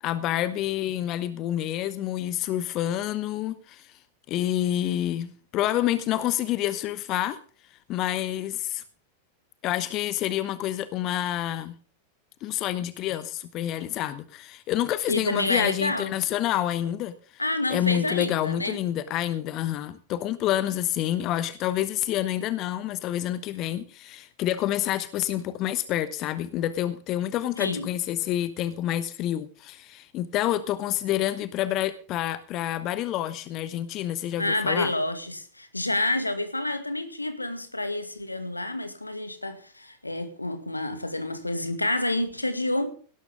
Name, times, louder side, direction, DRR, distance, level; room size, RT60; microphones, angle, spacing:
voice 1, 0.0-4.0 4.3-7.4 7.9-8.8 9.6-11.7 12.4-17.4 17.7-34.9, left 12 dB, 35° left, 1.1 m, -28 dB
voice 2, 15.1-16.1 17.4-18.8 27.6-27.9 34.4-42.9, left 1 dB, 85° left, 2.1 m, -28 dB
18.0 x 12.5 x 3.6 m
figure-of-eight pair, 90°, 0 cm